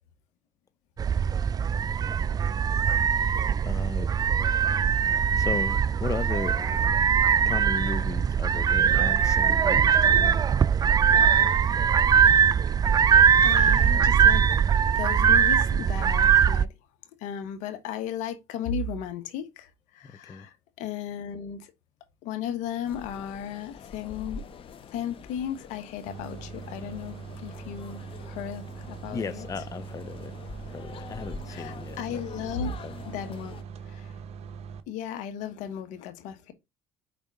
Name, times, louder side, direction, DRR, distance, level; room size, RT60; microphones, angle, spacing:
sound 1, 1.0-16.6, right 7 dB, 30° right, 0.3 m, -21 dB
voice 1, 3.6-4.1 5.4-7.0 7.5-10.4 20.0-20.5 29.1-32.2 32.7-32.9, left 4 dB, 25° left, 0.5 m, -36 dB
voice 2, 13.4-14.4 14.9-16.7 17.2-21.7 22.2-24.4 24.9-29.5 31.5-32.7 33.1-33.6 33.9-34.1 34.9-36.5, left 8 dB, 75° left, 1.3 m, -35 dB
sound 2, 22.8-33.6, left 5 dB, 45° left, 0.9 m, -45 dB
sound 3, 26.1-34.8, right 6 dB, 55° right, 0.9 m, -42 dB
5.2 x 4.0 x 4.8 m
supercardioid pair, 80°, 13 cm